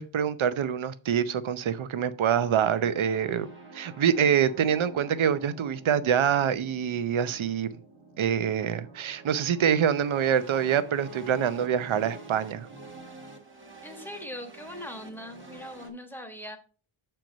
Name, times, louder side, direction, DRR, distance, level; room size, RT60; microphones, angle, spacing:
voice 1, 0.0-3.5 3.7-7.7 8.2-12.7, right 8 dB, 70° right, 0.8 m, -25 dB
sound 1, 2.3-15.9, right 2 dB, 25° right, 1.5 m, -48 dB
voice 2, 13.8-16.6, left 1 dB, 5° left, 1.3 m, -40 dB
7.7 x 4.5 x 5.2 m
wide cardioid pair, 165°, 50 cm